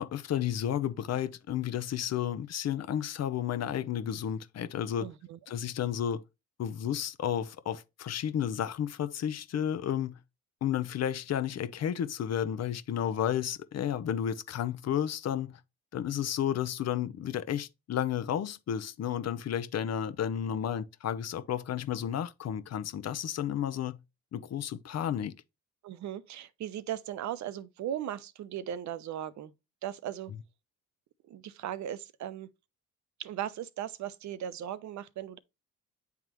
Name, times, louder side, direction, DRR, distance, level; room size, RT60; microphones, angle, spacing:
voice 1, 0.0-5.1 5.5-6.2 6.6-10.2 10.6-15.6 15.9-24.0 24.3-25.3, left 9 dB, 60° left, 0.8 m, -32 dB
voice 2, 5.0-5.4 25.8-29.5 29.8-30.3 31.2-32.5 33.2-35.4, right 11 dB, 70° right, 0.7 m, -37 dB
9.1 x 3.6 x 3.0 m
cardioid pair, 80°, 29 cm